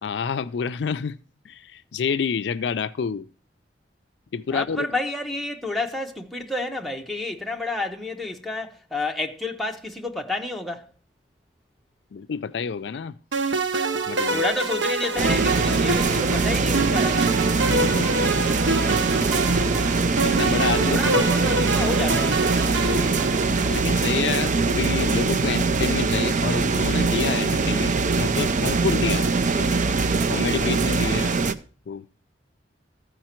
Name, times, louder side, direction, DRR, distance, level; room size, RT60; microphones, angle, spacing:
voice 1, 0.0-1.2 1.5-3.3 4.3-4.9 12.1-13.2 14.1-14.4 17.7-18.1 20.2-21.2 21.8-21.9 23.7-29.8 30.3-31.3 31.9-32.1, left 6 dB, 65° left, 0.4 m, -28 dB
voice 2, 4.5-10.9 14.3-17.3 20.9-22.4, left 2 dB, ahead, 0.8 m, -30 dB
sound 1, 13.3-24.0, right 3 dB, 85° right, 0.8 m, -26 dB
sound 2, 15.2-31.5, right 4 dB, 45° right, 0.5 m, -22 dB
14.0 x 5.1 x 4.4 m
head